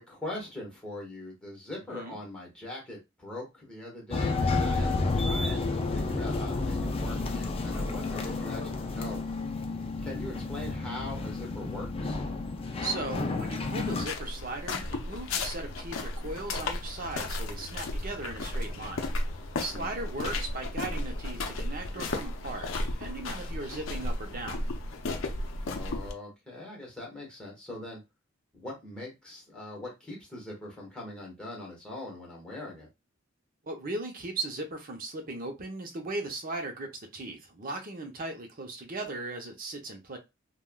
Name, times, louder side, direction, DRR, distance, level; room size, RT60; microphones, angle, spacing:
voice 1, 0.0-9.2 10.0-12.2 19.7-20.1 25.7-28.0 28.5-32.9, left 2 dB, 5° left, -2 dB, 1.4 m, -41 dB
sound 1, 4.1-14.1, left 3 dB, 30° left, 0.4 m, -31 dB
voice 2, 12.8-19.1 19.6-24.6 33.6-40.2, right 2 dB, 45° right, 3 dB, 0.7 m, -37 dB
sound 2, 13.9-26.1, left 2 dB, 85° left, 0.5 m, -34 dB
3.4 x 2.2 x 2.3 m, 0.23 s
head